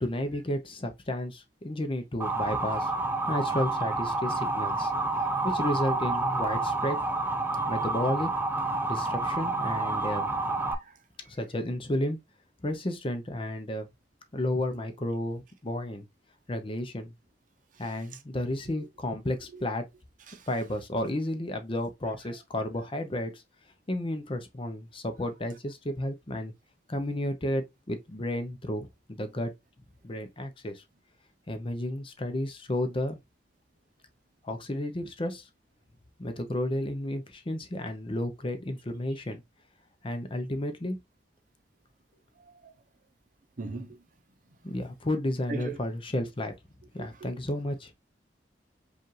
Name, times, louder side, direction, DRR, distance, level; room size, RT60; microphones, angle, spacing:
voice 1, 0.0-2.9 3.3-4.9 5.2-7.0 7.7-8.3 8.9-10.3 11.3-12.2 12.6-13.9 14.3-16.1 16.5-17.1 17.8-19.8 20.5-23.4 23.9-26.5 26.9-29.5 30.0-30.8 31.5-33.2 34.4-35.5 36.2-39.4 40.0-41.0 44.6-46.5 46.9-47.9, left 1 dB, 30° left, 0.7 m, -32 dB
Motor vehicle (road) / Siren, 2.2-10.7, right 2 dB, 10° right, 0.5 m, -29 dB
voice 2, 43.6-44.0 45.5-45.8 47.0-47.1, right 3 dB, 50° right, 0.7 m, -38 dB
5.0 x 2.5 x 3.1 m
head